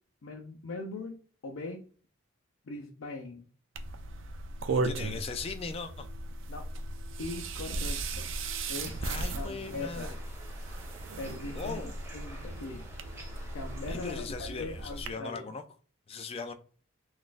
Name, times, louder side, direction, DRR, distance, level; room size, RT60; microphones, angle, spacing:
voice 1, 0.2-1.8 2.7-3.5 6.5-6.6 7.2-8.3 8.7-9.0 9.3-10.1 11.2-12.9 13.5-15.5, left 3 dB, 80° left, 1 dB, 0.5 m, -40 dB
sound 1, 3.8-15.1, right 3 dB, 70° right, 0.4 m, -37 dB
voice 2, 4.7-6.1 9.0-10.2 11.5-11.9 13.9-15.6 16.1-16.5, left 4 dB, 30° left, 8 dB, 0.3 m, -39 dB
Birds Next to Water Sounds, 8.8-14.2, right 1 dB, 15° right, 0.9 m, -51 dB
3.9 x 2.5 x 2.4 m, 0.41 s
head